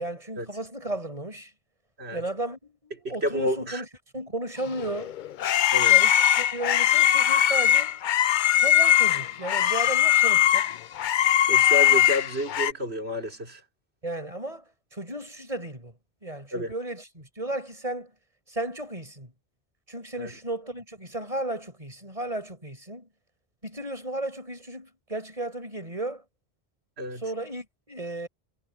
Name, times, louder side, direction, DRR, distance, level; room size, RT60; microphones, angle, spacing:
voice 1, 0.0-1.5 2.1-3.9 4.1-5.2 5.9-8.0 8.6-10.7 14.0-14.6 14.9-15.9 16.2-18.1 18.5-19.3 19.9-23.1 23.6-26.2 27.2-28.3, right 1 dB, 35° right, 6.5 m, -34 dB
voice 2, 3.0-3.8 5.7-5.9 11.5-13.6 16.5-16.7 20.2-20.3 27.0-27.2, left 1 dB, 90° right, 5.0 m, -30 dB
sound 1, 4.8-12.7, left 11 dB, 60° left, 0.6 m, -21 dB
omnidirectional pair, 1.0 m